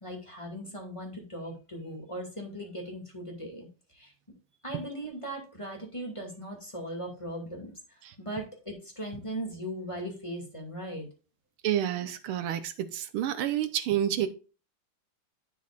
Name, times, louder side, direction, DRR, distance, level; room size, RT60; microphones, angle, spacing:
voice 1, 0.0-3.7 3.9-4.1 4.6-11.1, right 1 dB, 15° left, 0 dB, 2.2 m, -38 dB
voice 2, 11.6-14.3, right 11 dB, 85° right, 11 dB, 1.8 m, -29 dB
11.5 x 6.3 x 2.5 m, 0.34 s
omnidirectional pair, 2.3 m